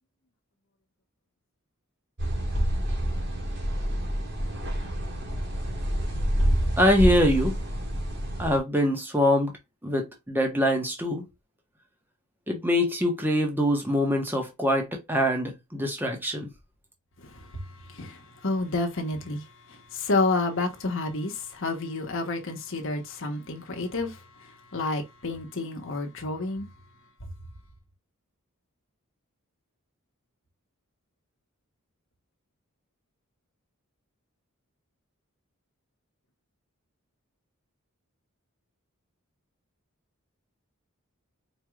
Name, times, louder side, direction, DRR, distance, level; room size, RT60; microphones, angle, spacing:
sound 1, 2.2-8.6, equal, 55° right, 1.6 m, -27 dB
voice 1, 6.8-7.5 8.4-9.5 9.8-11.2 12.5-16.5, equal, 10° right, 1.0 m, -24 dB
voice 2, 17.2-26.7 27.2-27.3, left 2 dB, 60° left, 1.1 m, -30 dB
4.6 x 3.1 x 2.3 m
head